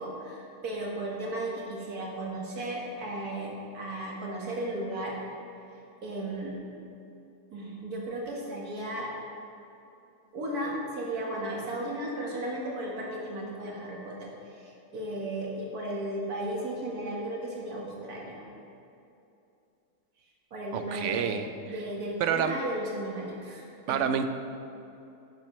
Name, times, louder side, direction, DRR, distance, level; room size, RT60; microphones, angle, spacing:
voice 1, 0.0-5.2 6.0-6.6 7.5-9.1 10.3-18.4 20.5-21.4 21.7-24.0, right 1 dB, 90° right, -3 dB, 2.1 m, -35 dB
voice 2, 20.7-21.5 22.2-22.6 23.9-24.3, right 7 dB, 65° right, 8 dB, 0.9 m, -28 dB
12.0 x 10.5 x 3.2 m, 2.7 s
omnidirectional pair, 1.6 m